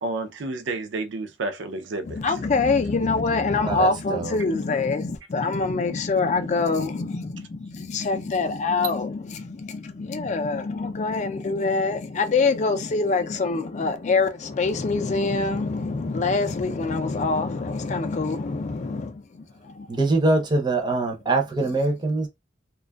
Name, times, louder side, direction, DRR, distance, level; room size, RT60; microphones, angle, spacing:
voice 1, 0.0-2.4, right 2 dB, 75° right, 0.5 m, -31 dB
voice 2, 2.1-20.0, left 3 dB, 40° left, 0.4 m, -25 dB
voice 3, 3.6-4.3 19.9-22.3, right 2 dB, 25° right, 0.5 m, -23 dB
2.5 x 2.2 x 2.2 m
head